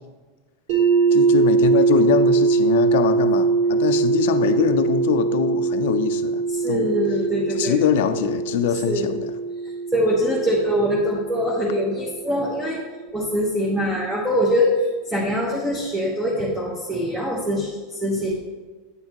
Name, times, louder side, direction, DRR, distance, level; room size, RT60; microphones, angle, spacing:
sound 1, 0.7-12.6, right 4 dB, 60° right, 2.5 m, -22 dB
voice 1, 1.1-6.9 7.6-9.1, left 9 dB, 65° left, 10 dB, 0.5 m, -23 dB
voice 2, 6.5-7.8 8.9-9.1 9.6-12.8 13.1-18.3, equal, 10° right, -4 dB, 1.0 m, -23 dB
8.9 x 6.6 x 2.9 m, 1.4 s
supercardioid pair, 155°, 0 cm